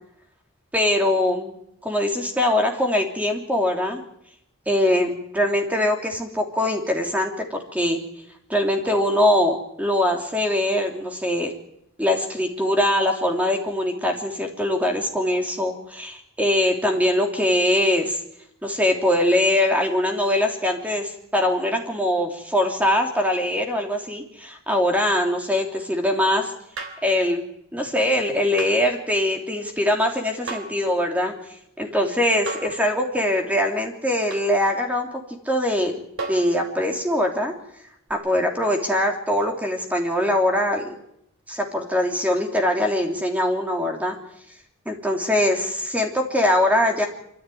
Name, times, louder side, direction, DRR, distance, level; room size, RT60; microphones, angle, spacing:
voice 1, 0.7-1.5 1.8-4.0 4.7-8.0 8.5-11.5 12.0-18.2 18.6-26.5 27.0-31.3 31.8-35.1 35.4-37.5 38.1-40.9 41.5-44.2 44.8-47.1, left 1 dB, 5° right, 2 dB, 3.2 m, -22 dB
sound 1, 26.8-27.1 28.6-28.8 30.5-30.8 32.5-32.8 34.3-34.5 36.2-36.5 38.1-38.2, right 3 dB, 75° right, 3.6 m, -33 dB
25.5 x 14.0 x 9.4 m, 0.76 s
head